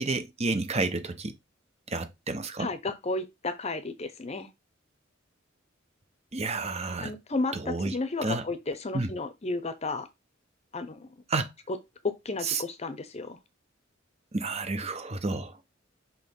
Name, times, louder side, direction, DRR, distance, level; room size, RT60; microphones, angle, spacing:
voice 1, 0.0-1.3 1.9-2.7 6.3-7.1 7.5-7.9 8.2-8.4 8.9-9.1 11.3-11.5 12.4-12.6 14.3-15.5, right 3 dB, 35° right, 1.0 m, -30 dB
voice 2, 2.6-4.5 7.0-10.1 10.7-11.1 11.7-11.8 12.0-13.4, left 3 dB, 35° left, 0.8 m, -33 dB
6.3 x 3.1 x 5.3 m
head